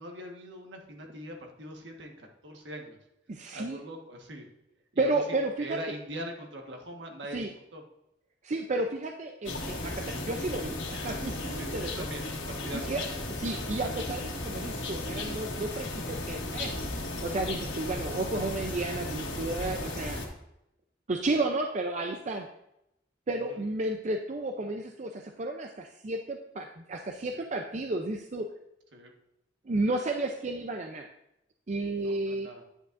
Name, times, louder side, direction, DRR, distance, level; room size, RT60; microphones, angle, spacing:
voice 1, 0.0-3.0 3.5-4.5 4.9-5.2 5.6-7.8 11.5-12.9 18.4-18.5 23.3-23.6 27.1-27.5 28.9-29.1 31.9-32.6, equal, 70° right, 2 dB, 1.4 m, -42 dB
voice 2, 3.3-3.8 5.0-5.8 7.3-7.5 8.4-12.1 12.7-13.0 13.3-16.7 17.2-20.2 21.1-22.5 23.3-28.5 29.7-31.1 31.7-32.5, right 2 dB, 40° right, 4 dB, 0.5 m, -32 dB
sound 1, 9.4-20.3, left 2 dB, 80° left, 1.6 m, -35 dB
9.9 x 8.0 x 2.6 m, 0.83 s
head